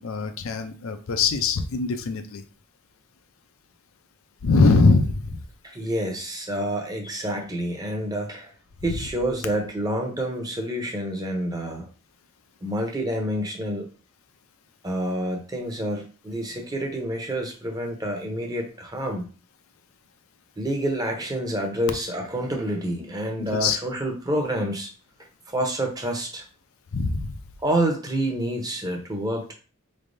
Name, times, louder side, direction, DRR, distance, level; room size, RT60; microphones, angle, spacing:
voice 1, 0.0-2.4 4.4-5.5 23.5-23.8 26.9-27.3, left 3 dB, 65° left, 8 dB, 0.5 m, -22 dB
voice 2, 5.6-8.5 8.8-11.9 12.6-13.9 14.8-19.3 20.6-24.9 25.5-26.5 27.6-29.5, right 1 dB, 15° right, 2 dB, 0.7 m, -28 dB
4.2 x 3.3 x 2.6 m, 0.38 s
head